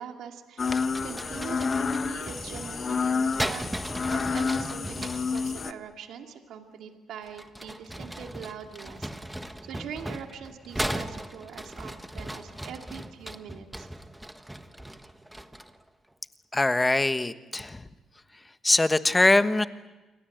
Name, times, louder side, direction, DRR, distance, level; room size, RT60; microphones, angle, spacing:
voice 1, 0.0-3.7 4.1-9.1 9.6-13.9, right 7 dB, 80° right, 4 dB, 2.4 m, -42 dB
sound 1, 0.6-5.7, left 5 dB, 40° left, 1.2 m, -29 dB
sound 2, 0.6-5.5 7.2-15.8, right 1 dB, 5° right, 1.4 m, -37 dB
voice 2, 16.5-17.8 18.6-19.7, left 2 dB, 15° left, 11 dB, 1.3 m, -22 dB
28.5 x 23.5 x 7.9 m, 1.2 s
cardioid pair, 90°, 0 cm